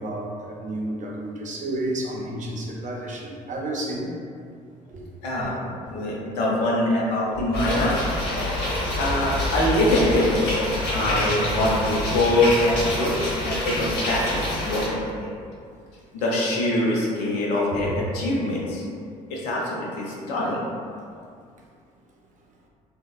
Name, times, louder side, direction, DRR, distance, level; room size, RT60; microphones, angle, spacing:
voice 1, 0.0-4.1 4.9-5.1 7.3-7.4 8.7-9.0 10.8-11.4 20.2-20.4, right 1 dB, 40° right, -1 dB, 0.5 m, -32 dB
voice 2, 5.2-8.0 8.9-10.3 10.9-13.1 13.4-15.3 16.1-18.8 19.3-20.6, left 1 dB, 80° left, -4 dB, 0.5 m, -24 dB
sound 1, 7.5-14.9, left 1 dB, 60° left, 0.9 m, -27 dB
2.9 x 2.1 x 2.3 m, 2.3 s
hypercardioid pair, 55°, 20 cm